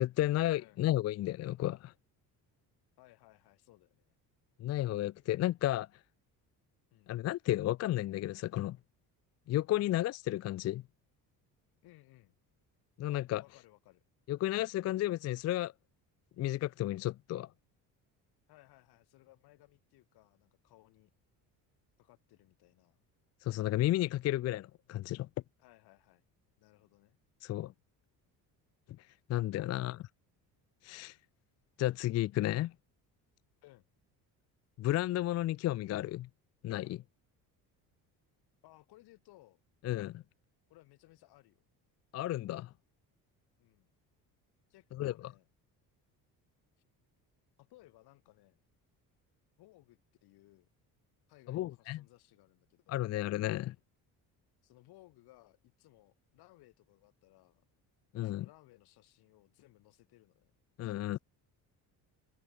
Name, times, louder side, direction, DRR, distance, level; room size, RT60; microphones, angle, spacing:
voice 1, 0.0-1.9 4.6-5.9 7.1-8.8 9.5-10.8 13.0-13.4 14.3-15.7 16.4-17.5 23.4-25.3 27.4-27.7 29.3-30.0 30.8-31.2 31.8-32.7 34.8-36.3 36.6-37.0 39.8-40.2 42.1-42.7 45.0-45.1 51.5-52.0 52.9-53.8 58.1-58.5 60.8-61.2, left 15 dB, 45° left, 0.4 m, -32 dB
voice 2, 3.0-4.1 6.9-7.1 11.8-12.4 13.4-14.0 18.5-21.1 22.0-23.0 25.6-26.2 26.6-27.2 29.6-30.1 33.6-33.9 38.6-39.6 40.7-41.6 43.6-43.9 44.7-45.5 47.6-48.6 49.6-50.7 51.3-53.1 54.6-57.6 58.2-60.5, left 18 dB, 80° left, 7.3 m, -62 dB
cardioid pair, 125°, 38 cm